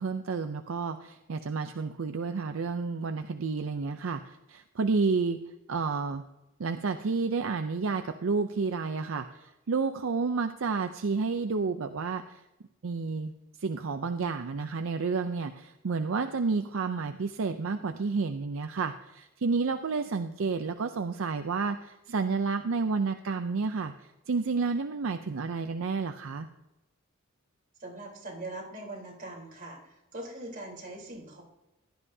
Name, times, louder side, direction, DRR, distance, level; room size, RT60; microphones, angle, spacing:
voice 1, 0.0-4.2 4.5-5.4 5.7-6.2 6.6-9.3 9.7-12.2 12.8-13.3 13.6-23.9 24.3-26.5, right 4 dB, 70° right, 8 dB, 0.5 m, -30 dB
voice 2, 27.8-31.4, right 2 dB, 40° right, -2 dB, 3.7 m, -41 dB
16.0 x 12.0 x 2.7 m, 0.97 s
head